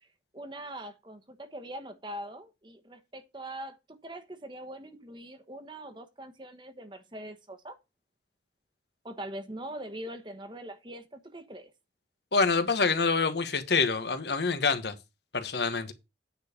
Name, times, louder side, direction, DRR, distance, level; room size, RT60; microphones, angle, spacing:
voice 1, 0.3-7.8 9.0-11.7, right 1 dB, 25° right, 1.1 m, -42 dB
voice 2, 12.3-14.9 15.3-15.9, left 4 dB, 70° left, 1.2 m, -26 dB
9.4 x 4.3 x 6.7 m
head